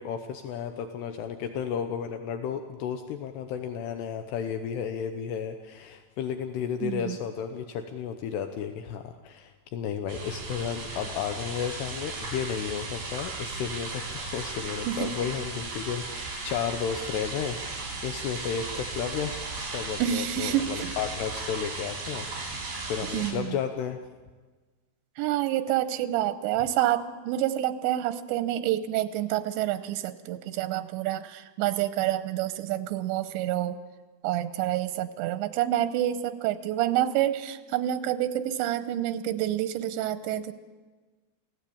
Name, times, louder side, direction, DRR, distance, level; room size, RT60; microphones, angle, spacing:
voice 1, 0.0-24.0, left 8 dB, 75° left, 7 dB, 3.0 m, -33 dB
voice 2, 6.8-7.2 14.9-15.1 20.0-20.9 23.1-23.5 25.2-33.8 34.2-40.5, right 12 dB, 90° right, 11 dB, 3.2 m, -28 dB
sound 1, 10.1-23.3, right 3 dB, 65° right, 7.1 m, -36 dB
27.5 x 17.0 x 8.6 m, 1.4 s
omnidirectional pair, 5.0 m